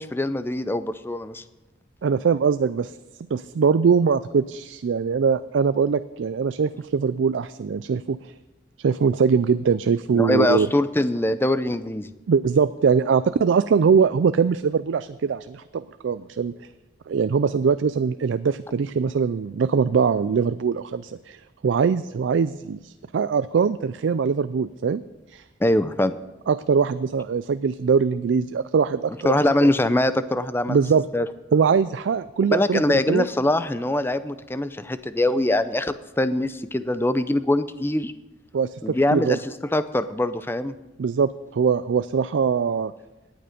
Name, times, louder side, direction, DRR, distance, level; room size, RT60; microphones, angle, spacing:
voice 1, 0.0-1.4 10.1-12.1 25.6-26.1 29.2-30.8 31.1-31.3 32.5-38.1 38.8-39.4 39.7-40.7, left 1 dB, 10° left, 13 dB, 0.5 m, -23 dB
voice 2, 2.0-2.9 3.3-8.3 8.8-10.7 12.3-16.5 17.1-21.4 21.6-25.0 25.3-25.4 26.5-29.4 30.7-31.1 31.5-33.3 38.5-39.4 41.0-42.9, right 6 dB, 75° right, 13 dB, 0.4 m, -22 dB
17.5 x 9.3 x 5.1 m, 1.1 s
head